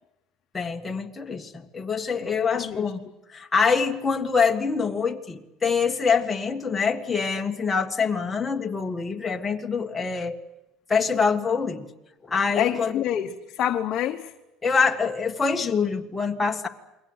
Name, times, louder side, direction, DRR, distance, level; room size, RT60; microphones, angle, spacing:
voice 1, 0.5-3.0 3.3-10.4 10.9-11.9 12.2-13.0 14.6-16.7, left 5 dB, 15° left, 3 dB, 1.7 m, -25 dB
voice 2, 2.2-2.8 12.6-14.3, left 10 dB, 45° left, 4 dB, 1.1 m, -27 dB
28.5 x 22.5 x 8.1 m, 0.98 s
cardioid pair, 155°, 0 cm